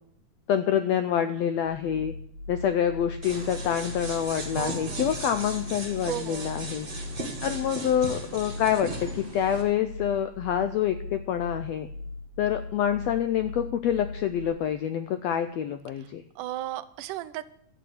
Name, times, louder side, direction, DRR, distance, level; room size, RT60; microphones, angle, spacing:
voice 1, 0.5-2.1 2.5-6.9 7.4-11.9 12.4-16.2, left 9 dB, 90° left, 10 dB, 1.5 m, -27 dB
sound 1, 1.6-14.5, left 2 dB, 70° left, 7.5 m, -40 dB
sound 2, 3.2-9.6, right 2 dB, 25° right, 1.4 m, -37 dB
voice 2, 4.5-5.0 6.1-6.6 16.0-16.1 16.4-17.5, right 14 dB, 80° right, 12 dB, 2.1 m, -35 dB
13.0 x 7.6 x 7.9 m, 0.69 s
omnidirectional pair, 3.7 m